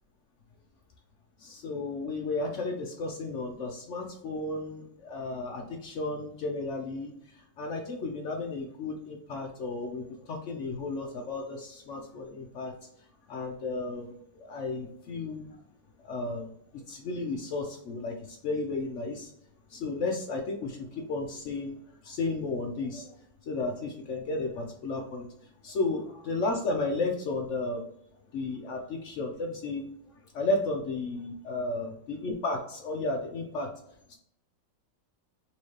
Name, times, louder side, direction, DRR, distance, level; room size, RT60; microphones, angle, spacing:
voice 1, 1.4-7.1 7.6-12.7 13.3-15.6 16.0-19.3 19.7-21.8 22.0-23.1 23.5-25.3 25.6-27.9 28.3-29.8 30.3-33.7 34.1-34.2, left 3 dB, 75° left, 2 dB, 0.6 m, -33 dB
4.2 x 2.7 x 3.1 m, 0.72 s
omnidirectional pair, 2.0 m